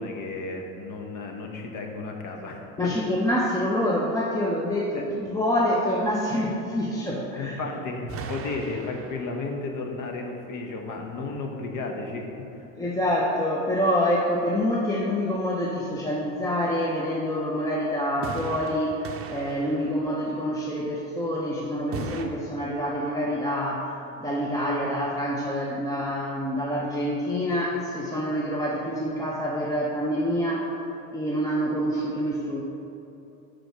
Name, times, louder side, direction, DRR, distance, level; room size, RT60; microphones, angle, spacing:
voice 1, 0.0-2.8 4.9-5.0 7.3-12.3 12.5-12.6, left 3 dB, 50° left, 3 dB, 1.1 m, -33 dB
voice 2, 2.8-7.5 12.8-30.8 31.1-32.6, equal, 10° left, -3 dB, 0.6 m, -26 dB
sound 1, 8.1-9.8 18.2-20.5 21.9-22.2, right 4 dB, 35° right, 0.6 m, -38 dB
5.0 x 4.6 x 6.1 m, 2.9 s
supercardioid pair, 95°, 41 cm